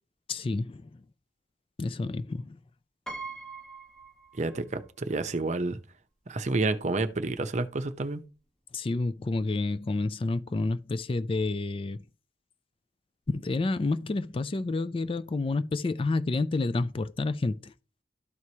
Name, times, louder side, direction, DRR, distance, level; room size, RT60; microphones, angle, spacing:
voice 1, 0.3-1.0 1.8-2.6 8.7-12.0 13.3-17.7, left 3 dB, 30° left, 0.4 m, -29 dB
Piano, 3.1-4.9 5.2-5.3 6.5-6.6 6.8-7.1, right 3 dB, 5° left, 0.9 m, -42 dB
voice 2, 4.3-5.8 6.3-8.2, right 2 dB, 40° right, 0.7 m, -29 dB
12.5 x 4.7 x 2.8 m
head